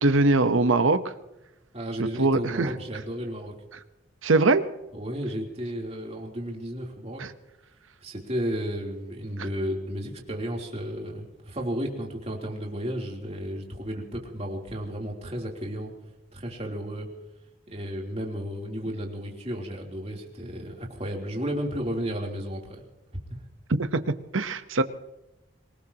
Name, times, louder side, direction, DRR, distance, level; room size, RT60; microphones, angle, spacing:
voice 1, 0.0-1.0 2.0-2.7 4.2-4.6 7.2-7.3 23.8-24.0 24.3-24.8, right 3 dB, 85° right, 11 dB, 1.0 m, -22 dB
voice 2, 1.7-3.5 4.9-7.2 8.0-15.9 16.3-17.1 17.7-22.8 23.3-23.4, equal, 30° right, 0 dB, 3.3 m, -33 dB
26.0 x 18.5 x 2.9 m, 0.97 s
head